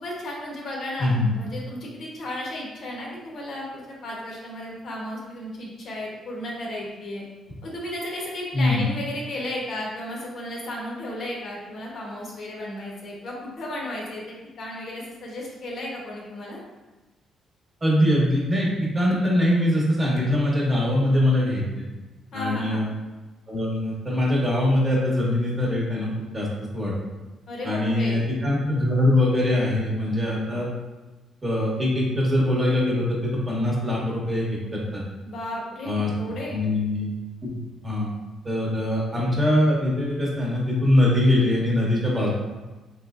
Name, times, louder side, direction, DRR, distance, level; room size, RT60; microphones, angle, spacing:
voice 1, 0.0-7.2 7.6-16.6 22.3-22.9 27.5-28.2 35.2-36.6, left 1 dB, 60° left, -3 dB, 0.9 m, -34 dB
voice 2, 17.8-21.6 22.3-22.8 23.5-26.5 26.7-26.9 27.6-30.7 31.4-34.5 34.7-35.0 35.8-36.1 36.5-37.1 37.4-37.5 37.8-38.1 38.4-42.4, left 1 dB, 25° right, -4 dB, 1.0 m, -22 dB
3.1 x 3.1 x 2.4 m, 1.2 s
cardioid pair, 90°, 0 cm